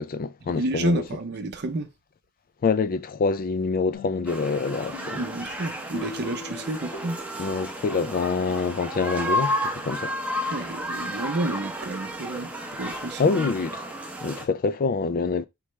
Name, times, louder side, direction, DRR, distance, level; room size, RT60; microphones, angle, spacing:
voice 1, 0.0-1.0 2.6-5.2 7.4-10.1 13.2-13.9 14.2-15.5, left 4 dB, 40° left, 0.4 m, -26 dB
voice 2, 0.5-1.9 5.2-7.2 10.5-13.5, right 2 dB, 50° right, 0.6 m, -30 dB
sound 1, 3.9-8.6, left 4 dB, 75° left, 1.3 m, -43 dB
sound 2, 4.3-14.5, equal, 5° right, 0.7 m, -32 dB
4.7 x 3.2 x 3.2 m
head